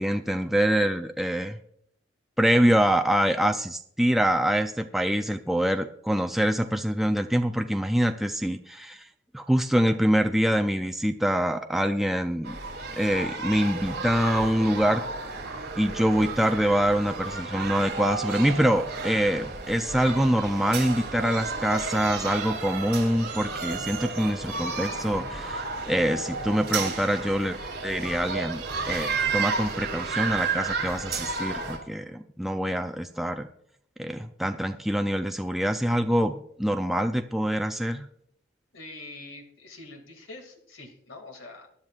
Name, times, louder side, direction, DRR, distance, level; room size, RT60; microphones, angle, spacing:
voice 1, 0.0-1.6 2.4-9.1 9.3-12.6 12.9-15.0 15.8-33.5 34.0-38.1, equal, ahead, 5 dB, 0.4 m, -25 dB
sound 1, 12.4-31.8, right 4 dB, 55° right, 3.1 m, -32 dB
voice 2, 38.7-41.7, left 2 dB, 90° left, 4 dB, 2.3 m, -44 dB
21.0 x 11.0 x 2.4 m, 0.70 s
head